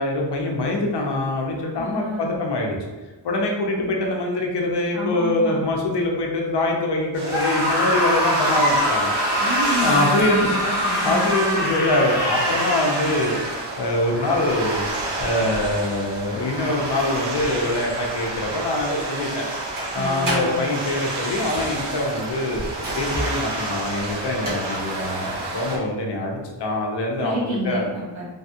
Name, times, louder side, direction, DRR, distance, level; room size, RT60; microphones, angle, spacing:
voice 1, 0.0-2.8 3.2-9.1 9.8-10.6 11.0-13.4 13.8-14.9 15.2-19.5 19.9-22.6 22.9-27.4 27.6-27.9, left 2 dB, 60° left, 0 dB, 0.7 m, -24 dB
voice 2, 1.7-2.4 4.9-5.6 9.4-11.3 19.9-20.6 27.2-28.3, equal, 75° right, -8 dB, 1.2 m, -29 dB
sound 1, 7.1-25.8, right 2 dB, 60° right, 0.7 m, -30 dB
Screaming, 7.2-13.7, equal, 5° right, 0.9 m, -24 dB
sound 2, 14.4-24.6, right 1 dB, 45° right, 1.2 m, -36 dB
3.3 x 2.3 x 2.7 m, 1.3 s
wide cardioid pair, 160°, 47 cm